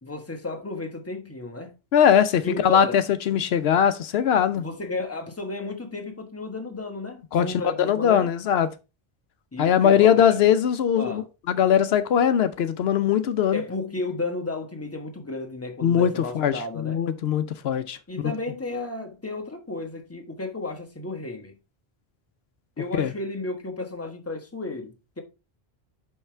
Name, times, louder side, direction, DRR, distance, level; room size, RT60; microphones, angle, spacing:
voice 1, 0.0-1.7 2.4-3.0 4.6-8.3 9.5-10.2 11.0-11.2 13.5-17.0 18.1-21.5 22.8-25.2, left 2 dB, 15° left, 1.1 m, -33 dB
voice 2, 1.9-4.6 7.3-8.7 9.6-13.6 15.8-18.0 23.0-23.1, left 8 dB, 80° left, 0.8 m, -21 dB
5.6 x 5.5 x 4.4 m
omnidirectional pair, 1.0 m